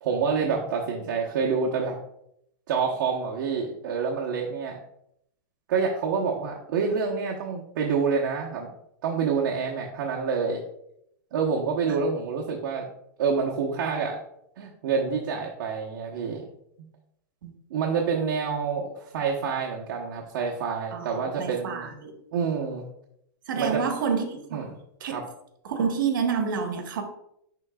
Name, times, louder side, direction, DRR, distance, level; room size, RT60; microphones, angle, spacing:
voice 1, 0.0-2.0 2.7-4.8 5.7-8.7 9.0-10.6 11.3-12.8 13.2-14.2 14.6-16.4 17.7-21.9 22.3-22.9 23.6-23.8 24.5-24.8 25.1-25.2, right 5 dB, 65° right, -2 dB, 1.0 m, -27 dB
voice 2, 20.9-22.1 23.5-24.6 25.0-25.2 25.6-27.0, right 6 dB, 85° right, 5 dB, 1.2 m, -28 dB
10.5 x 3.8 x 2.3 m, 0.75 s
supercardioid pair, 155°, 11 cm